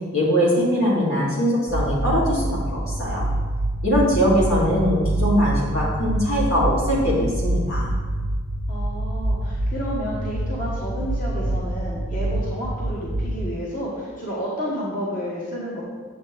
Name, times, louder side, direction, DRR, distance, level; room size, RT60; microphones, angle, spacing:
voice 1, 0.1-3.2 3.8-7.9, equal, 80° left, -6 dB, 2.5 m, -21 dB
sound 1, 1.7-13.5, right 1 dB, 75° right, 0.8 m, -26 dB
voice 2, 8.7-15.8, equal, 40° left, -5 dB, 1.2 m, -31 dB
8.3 x 6.8 x 3.3 m, 1.5 s
head